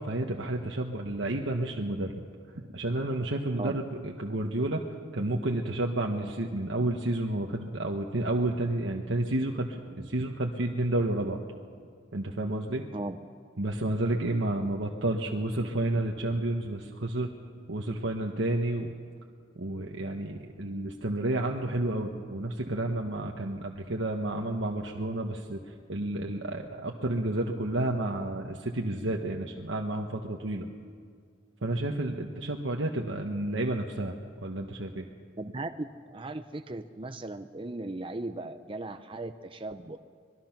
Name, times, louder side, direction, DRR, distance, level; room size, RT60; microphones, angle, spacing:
voice 1, 0.0-2.2 2.5-4.8 5.1-11.4 12.1-12.9 13.6-17.3 17.7-18.9 19.5-30.7 31.6-35.0, right 1 dB, 70° right, 1 dB, 1.3 m, -31 dB
voice 2, 35.4-40.0, right 2 dB, 25° right, 8 dB, 0.6 m, -37 dB
25.5 x 20.5 x 6.0 m, 2.1 s
head